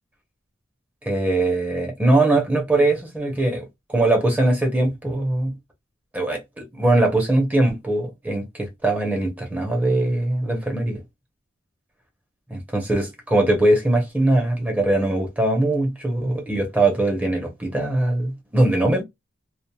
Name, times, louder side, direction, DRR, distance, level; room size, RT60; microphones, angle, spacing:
voice 1, 1.0-5.5 6.1-11.0 12.5-19.0, right 2 dB, 10° right, 0.8 m, -21 dB
3.0 x 2.3 x 2.2 m
head